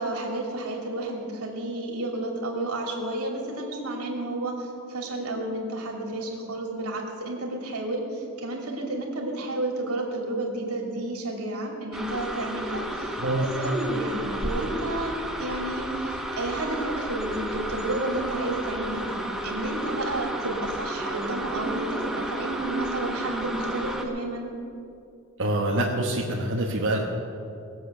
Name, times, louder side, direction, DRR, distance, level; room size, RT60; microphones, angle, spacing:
voice 1, 0.0-24.5, right 2 dB, 80° right, 0 dB, 2.6 m, -31 dB
sound 1, 11.9-24.0, right 1 dB, ahead, 1.0 m, -33 dB
voice 2, 25.4-27.0, right 1 dB, 55° right, -3 dB, 1.2 m, -25 dB
19.5 x 7.8 x 6.7 m, 2.6 s
head